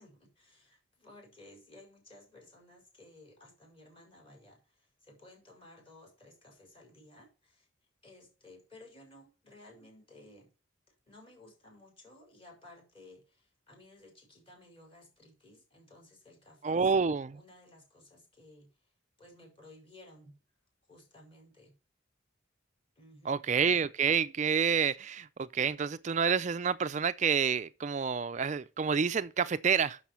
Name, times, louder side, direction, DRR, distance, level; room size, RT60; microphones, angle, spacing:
voice 1, 0.0-7.7 8.0-10.5 10.9-16.9 17.3-18.9 19.2-20.3 20.9-21.7 22.9-23.4, left 1 dB, 30° left, 5.0 m, -56 dB
voice 2, 16.6-17.4 23.3-30.0, right 6 dB, 35° right, 0.4 m, -28 dB
7.4 x 6.5 x 6.9 m
head